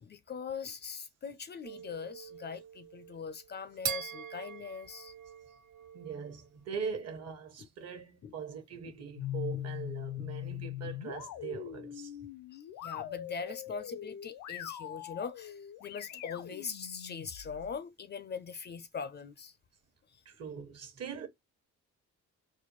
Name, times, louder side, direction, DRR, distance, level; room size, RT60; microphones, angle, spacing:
voice 1, 0.0-5.1 7.6-7.7 8.2-8.3 9.5-9.6 10.2-10.3 12.5-19.5, left 6 dB, 35° left, 0.4 m, -41 dB
sound 1, 1.6-6.5, right 7 dB, 85° right, 1.4 m, -43 dB
voice 2, 5.9-12.1 20.2-21.3, right 6 dB, 55° right, 1.1 m, -41 dB
sound 2, 9.1-17.7, left 12 dB, 90° left, 0.6 m, -42 dB
4.1 x 2.3 x 3.0 m
cardioid pair, 90°, 30 cm